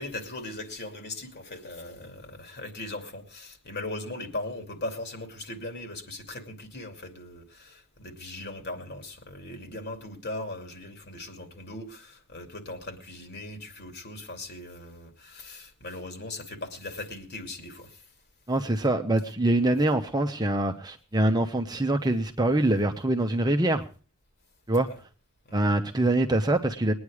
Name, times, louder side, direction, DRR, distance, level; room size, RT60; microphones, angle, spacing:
voice 1, 0.0-18.1 24.9-25.0 25.4-25.7, left 2 dB, 50° left, 2.6 m, -39 dB
voice 2, 18.5-23.8 24.7-24.9 25.5-26.9, right 1 dB, 20° right, 0.8 m, -24 dB
21.0 x 9.6 x 4.9 m
head